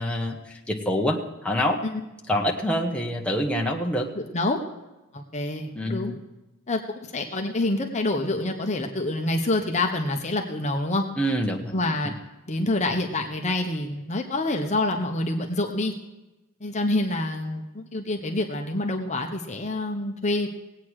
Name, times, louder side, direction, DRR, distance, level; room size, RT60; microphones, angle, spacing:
voice 1, 0.0-1.8 2.3-4.1 5.7-6.2 11.2-11.7 12.0-12.1, equal, 5° left, -1 dB, 1.2 m, -26 dB
voice 2, 4.2-4.6 5.1-6.1 6.7-6.8 7.1-11.0 11.7-12.1 12.5-15.9 16.6-20.5, left 2 dB, 35° left, 3 dB, 1.0 m, -27 dB
19.0 x 8.7 x 4.8 m, 1.0 s
head